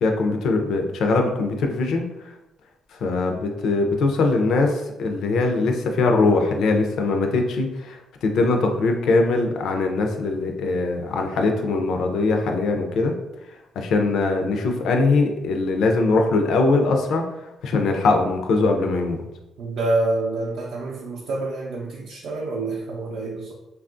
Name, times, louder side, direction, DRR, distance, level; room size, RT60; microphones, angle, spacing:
voice 1, 0.0-2.0 3.0-13.1 13.8-17.2 17.6-19.2, left 3 dB, 75° left, 3 dB, 0.4 m, -21 dB
voice 2, 19.6-23.5, right 2 dB, 80° right, -3 dB, 0.5 m, -27 dB
3.4 x 2.3 x 2.5 m, 0.95 s
cardioid pair, 90°, 0 cm